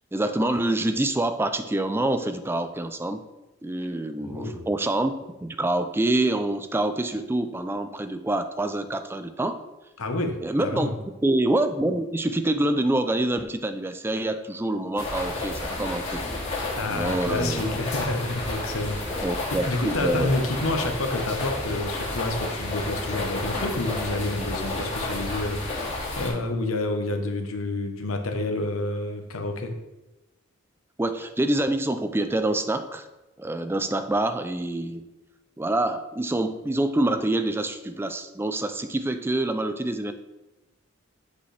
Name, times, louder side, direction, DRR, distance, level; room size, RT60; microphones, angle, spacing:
voice 1, 0.1-3.2 3.6-9.6 10.4-10.9 11.2-16.2 16.5-16.6 16.9-17.7 19.2-20.3 31.0-33.1 33.4-35.1 35.6-40.1, right 1 dB, 10° right, 9 dB, 0.4 m, -26 dB
voice 2, 4.2-4.7 10.0-10.9 16.8-19.2 19.5-29.7, left 2 dB, 80° left, 4 dB, 1.0 m, -29 dB
sound 1, 15.0-26.3, left 2 dB, 30° left, 2.2 m, -31 dB
8.2 x 5.2 x 3.3 m, 1.0 s
head